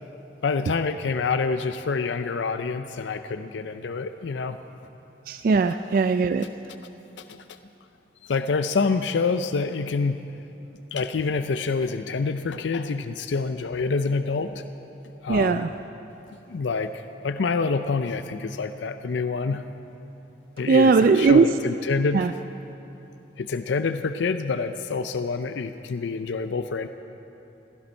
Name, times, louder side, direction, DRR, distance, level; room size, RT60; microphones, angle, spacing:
voice 1, 0.4-4.6 7.3-7.4 8.2-10.2 10.9-14.6 15.2-15.6 16.5-19.6 20.6-22.3 23.4-26.9, left 4 dB, 80° left, 10 dB, 0.5 m, -27 dB
voice 2, 5.3-6.5 15.3-15.7 20.7-21.5 22.1-22.3, right 4 dB, 50° right, 10 dB, 0.3 m, -19 dB
16.0 x 14.0 x 5.4 m, 2.9 s
head